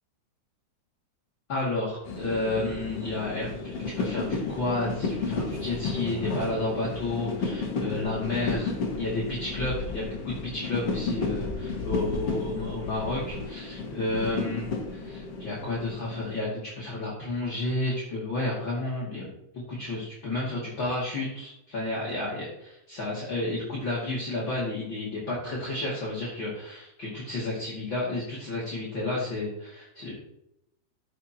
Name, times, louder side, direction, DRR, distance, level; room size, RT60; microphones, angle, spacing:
voice 1, 1.5-19.2 19.5-30.1, left 2 dB, 40° left, -6 dB, 1.9 m, -31 dB
sound 1, 2.0-16.4, left 3 dB, 60° left, 1.6 m, -33 dB
15.0 x 7.2 x 2.9 m, 0.83 s
omnidirectional pair, 5.5 m